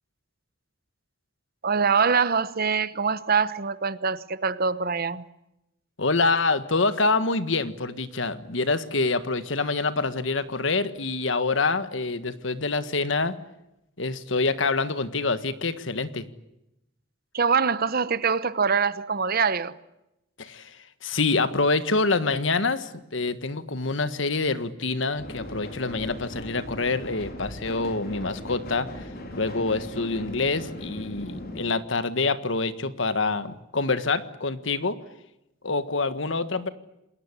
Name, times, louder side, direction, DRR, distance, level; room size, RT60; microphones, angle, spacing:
voice 1, 1.6-5.2 17.3-19.8, right 5 dB, 50° right, 1.1 m, -24 dB
voice 2, 6.0-13.3 14.0-16.2 20.4-20.7 21.0-29.0 29.3-35.0 35.6-36.7, left 3 dB, 70° left, 1.6 m, -26 dB
sound 1, 25.1-31.6, left 1 dB, 55° left, 4.4 m, -38 dB
28.0 x 20.5 x 9.8 m
head